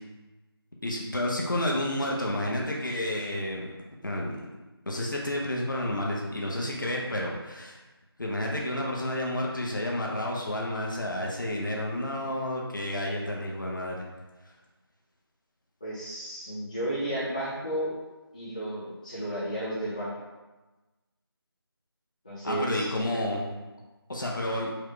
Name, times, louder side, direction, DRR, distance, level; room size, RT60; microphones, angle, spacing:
voice 1, 0.8-3.7 4.0-4.4 4.9-7.8 8.2-14.1 22.4-23.5 24.1-24.7, left 1 dB, 50° left, -2 dB, 0.8 m, -30 dB
voice 2, 15.8-17.9 18.3-20.1 22.2-22.9, right 1 dB, 20° left, -9 dB, 0.7 m, -32 dB
4.7 x 2.0 x 4.4 m, 1.2 s
figure-of-eight pair, 170°, 13 cm